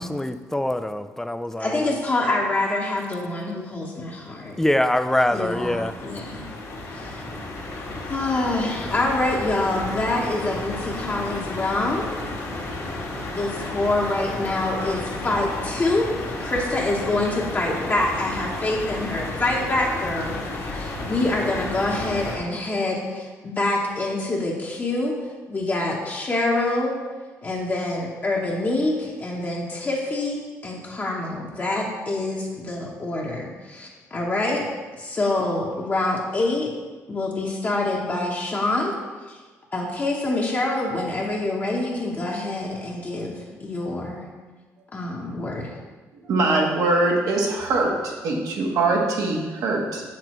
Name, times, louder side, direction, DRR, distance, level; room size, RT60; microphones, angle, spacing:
voice 1, 0.0-2.0 4.6-5.9, left 1 dB, 5° left, 10 dB, 0.4 m, -24 dB
voice 2, 1.6-4.6 5.3-6.5 6.9-7.2 8.1-12.1 13.3-16.1 16.4-20.4 20.7-25.1 25.5-27.0 27.4-34.7 35.0-36.7 37.1-38.9 39.7-44.3 44.9-45.7, left 2 dB, 30° left, -3 dB, 1.0 m, -26 dB
sound 1, 4.4-22.4, left 2 dB, 60° left, 1.5 m, -33 dB
voice 3, 46.3-50.0, right 2 dB, 75° right, 0 dB, 1.3 m, -22 dB
6.6 x 6.0 x 3.1 m, 1.3 s
cardioid pair, 80°, 6 cm